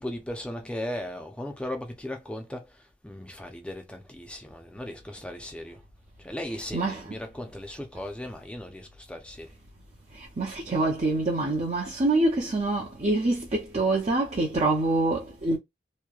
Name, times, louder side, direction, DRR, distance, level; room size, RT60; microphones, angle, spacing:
voice 1, 0.0-2.7 3.0-5.8 6.2-9.5, left 1 dB, 5° left, 0.6 m, -37 dB
voice 2, 6.7-7.1 10.1-15.6, right 2 dB, 35° right, 0.6 m, -26 dB
3.0 x 2.7 x 2.3 m
head